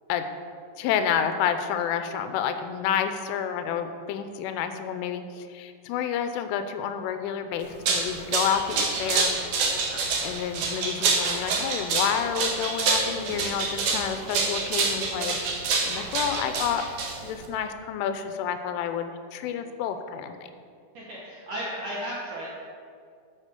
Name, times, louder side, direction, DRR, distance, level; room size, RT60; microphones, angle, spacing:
voice 1, 0.8-9.6 10.2-15.4 15.9-16.9 17.2-20.4, left 8 dB, 85° left, 9 dB, 3.1 m, -29 dB
sound 1, 7.6-17.5, right 4 dB, 85° right, 1.7 m, -27 dB
voice 2, 20.9-22.5, equal, 70° right, -5 dB, 2.0 m, -35 dB
11.0 x 6.3 x 6.7 m, 2.2 s
omnidirectional pair, 5.7 m